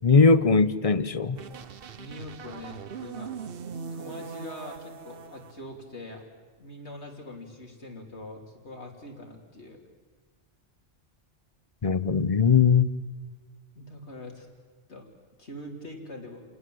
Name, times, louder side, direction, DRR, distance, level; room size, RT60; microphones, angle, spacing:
voice 1, 0.0-1.4 11.8-12.9, left 5 dB, 35° left, 15 dB, 0.9 m, -20 dB
sound 1, 1.3-5.5, right 6 dB, 60° right, 1.1 m, -40 dB
voice 2, 2.0-3.3 3.9-6.2 6.6-9.8 13.8-14.5 14.9-15.1 15.4-16.4, left 1 dB, 70° left, 1 dB, 3.7 m, -43 dB
29.0 x 19.0 x 7.8 m, 1.4 s
omnidirectional pair, 1.2 m